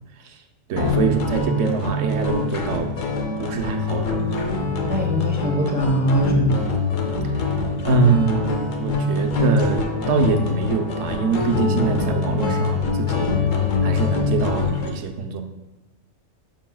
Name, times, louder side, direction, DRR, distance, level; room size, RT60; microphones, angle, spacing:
voice 1, 0.7-2.9 3.4-4.2 4.6-4.8 7.8-13.3 13.8-15.4, right 4 dB, 70° right, 5 dB, 1.1 m, -24 dB
sound 1, 0.8-14.9, left 3 dB, 75° left, 1.3 m, -24 dB
voice 2, 4.9-6.6, right 1 dB, 10° right, 1 dB, 0.6 m, -22 dB
11.5 x 5.7 x 2.3 m, 1.1 s
omnidirectional pair, 1.4 m